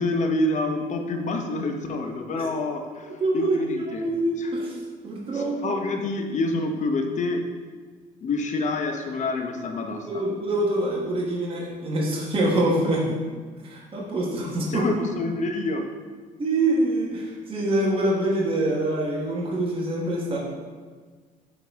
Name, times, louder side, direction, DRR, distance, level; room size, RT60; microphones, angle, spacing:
voice 1, 0.0-4.0 4.4-4.5 5.3-7.4 8.2-10.2 14.7-15.9, left 2 dB, 45° left, 5 dB, 0.8 m, -27 dB
voice 2, 3.2-5.8 10.1-13.2 13.6-14.9 16.4-20.4, right 1 dB, 30° right, -4 dB, 1.3 m, -25 dB
8.5 x 3.9 x 3.5 m, 1.5 s
cardioid pair, 110°, 17 cm